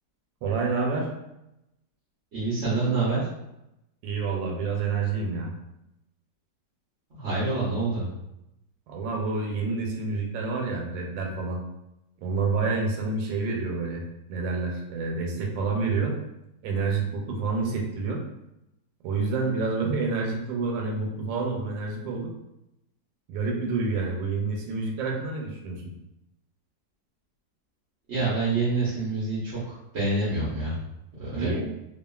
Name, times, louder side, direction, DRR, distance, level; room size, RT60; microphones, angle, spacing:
voice 1, 0.4-1.1 4.0-5.5 8.9-11.6 12.2-14.0 14.3-16.2 16.6-18.2 19.0-22.3 23.3-25.9 31.3-31.7, right 4 dB, 90° right, 0 dB, 1.3 m, -28 dB
voice 2, 2.3-3.3 7.1-8.1 28.1-30.8 31.2-31.7, right 3 dB, 55° right, -9 dB, 0.8 m, -27 dB
3.0 x 2.4 x 2.2 m, 0.87 s
omnidirectional pair, 2.0 m